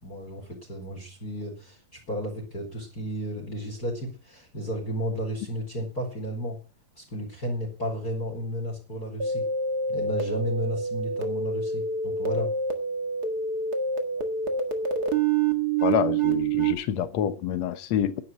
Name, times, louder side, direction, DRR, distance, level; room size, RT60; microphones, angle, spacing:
voice 1, 0.0-6.6 7.0-9.5 9.9-12.5, equal, 25° left, 4.2 m, -33 dB
sound 1, 9.2-16.7, right 4 dB, 45° right, 1.2 m, -27 dB
voice 2, 15.8-18.2, left 9 dB, 75° left, 1.5 m, -27 dB
11.0 x 10.0 x 7.5 m
omnidirectional pair, 4.5 m